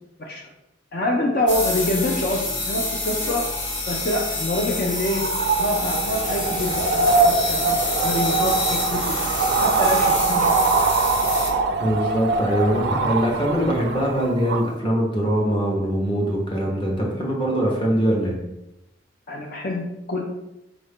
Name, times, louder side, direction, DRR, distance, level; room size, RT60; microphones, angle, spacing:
voice 1, 0.9-3.4 3.9-5.3 5.6-9.0 9.6-10.9 19.3-20.2, left 1 dB, 50° left, -1 dB, 0.5 m, -26 dB
sound 1, 1.5-11.5, left 2 dB, 75° left, 1.1 m, -27 dB
sound 2, 5.0-14.7, right 4 dB, 65° right, 0.4 m, -23 dB
voice 2, 11.8-18.4, equal, 25° left, -2 dB, 1.0 m, -22 dB
4.7 x 2.6 x 3.6 m, 0.90 s
head